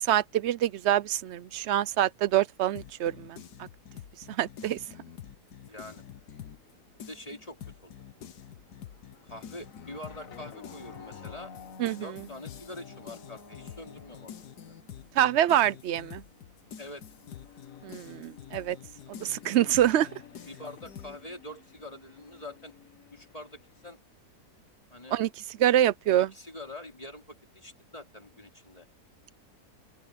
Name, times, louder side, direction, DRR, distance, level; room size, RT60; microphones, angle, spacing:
voice 1, 0.0-3.4 4.3-4.8 11.8-12.1 15.2-16.2 17.8-18.8 19.2-20.1 25.1-25.3 25.6-26.3, right 12 dB, 65° right, 0.7 m, -25 dB
sound 1, 2.8-6.7 7.0-21.2, left 9 dB, 85° left, 1.6 m, -47 dB
voice 2, 5.6-6.0 7.0-7.9 9.2-11.5 12.0-14.5 16.8-17.1 20.4-22.7 23.1-24.0 24.9-25.2 26.1-28.9, left 1 dB, 20° left, 4.0 m, -45 dB
sound 2, 5.8-24.0, left 5 dB, 55° left, 2.0 m, -53 dB
open air
omnidirectional pair, 1.7 m